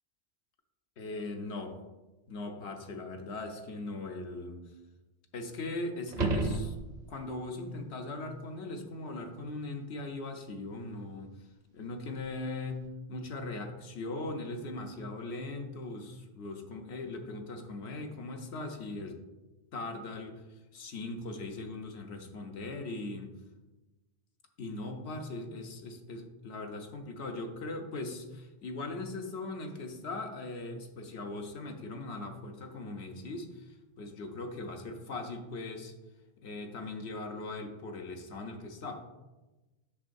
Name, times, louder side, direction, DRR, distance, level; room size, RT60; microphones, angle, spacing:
voice 1, 1.0-1.8 2.3-4.6 5.3-6.8 7.1-11.4 11.7-19.2 19.7-20.4 20.7-23.3 24.6-35.9 36.4-39.1, left 2 dB, 80° left, 4 dB, 1.1 m, -39 dB
sound 1, 6.1-7.3 12.2-12.3, right 3 dB, 50° right, 0.6 m, -31 dB
8.4 x 6.3 x 2.6 m, 1.1 s
omnidirectional pair, 1.1 m